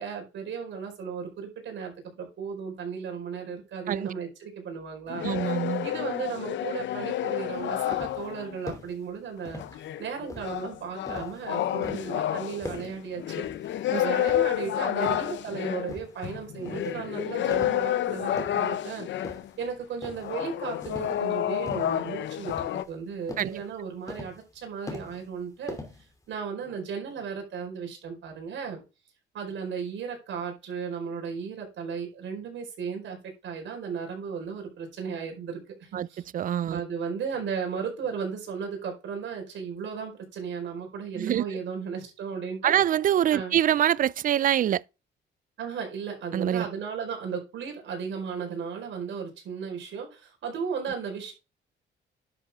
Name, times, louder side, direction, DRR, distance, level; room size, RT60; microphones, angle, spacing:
voice 1, 0.0-5.3 5.8-9.6 10.0-13.4 14.0-19.1 19.6-25.8 26.3-28.8 29.3-36.2 36.6-42.8 43.3-43.5 45.6-51.3, right 6 dB, 70° right, 4.6 m, -35 dB
sound 1, 5.1-8.6 9.6-19.5 20.2-22.8, left 12 dB, 70° left, 0.7 m, -30 dB
voice 2, 5.2-5.9 13.9-14.0 15.0-15.2 23.4-23.6 35.9-36.1 36.3-36.8 41.1-41.4 42.6-44.8 46.3-46.7, right 10 dB, 45° right, 0.4 m, -25 dB
sound 2, 7.5-8.3 8.7-9.0 9.4-9.9 10.3-11.4 11.8-12.2 12.6-13.0 13.4-13.8 14.2-15.4 15.9-16.2 16.7-17.0 17.5-17.9 18.2-18.8 19.2-19.7 20.0-20.4 20.8-21.2 21.7-22.0 22.5-23.0 23.3-23.6 24.1-24.6 24.9-25.4 25.7-26.3, left 2 dB, 15° left, 2.8 m, -41 dB
11.0 x 6.6 x 3.6 m
cardioid pair, 90°, 20 cm